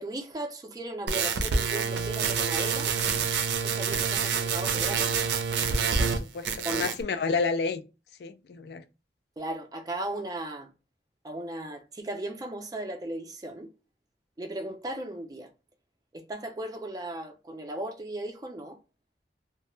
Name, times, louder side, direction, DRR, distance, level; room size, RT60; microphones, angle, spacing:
voice 1, 0.0-2.9 3.6-5.2 6.6-6.9 9.4-10.7 11.2-13.7 14.4-15.5 16.1-18.8, right 1 dB, 20° right, 0.4 m, -36 dB
sound 1, 1.1-6.2 6.5-7.0, right 5 dB, 80° right, 0.5 m, -27 dB
voice 2, 6.0-7.8 8.2-8.8, left 4 dB, 65° left, 0.3 m, -30 dB
2.2 x 2.0 x 3.0 m
head